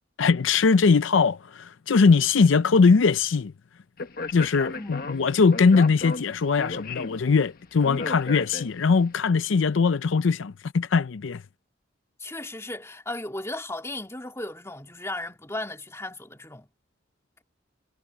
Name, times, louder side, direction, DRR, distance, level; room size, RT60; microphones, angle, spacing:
voice 1, 0.2-3.5 4.3-11.4, left 4 dB, 75° left, 0.5 m, -21 dB
Speech, 4.0-9.0, left 3 dB, 50° left, 1.3 m, -35 dB
voice 2, 12.2-16.7, left 2 dB, 15° left, 2.8 m, -35 dB
head